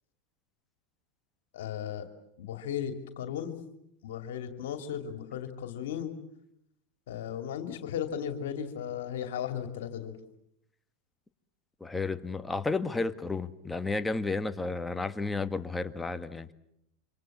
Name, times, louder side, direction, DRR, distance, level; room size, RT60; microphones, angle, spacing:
voice 1, 1.5-2.1 2.4-3.6 4.0-6.1 7.1-10.2, left 9 dB, 75° left, 7 dB, 2.7 m, -36 dB
voice 2, 11.8-16.5, left 3 dB, 10° left, 9 dB, 1.6 m, -32 dB
27.0 x 25.5 x 7.3 m, 0.78 s
hypercardioid pair, 105°, 0 cm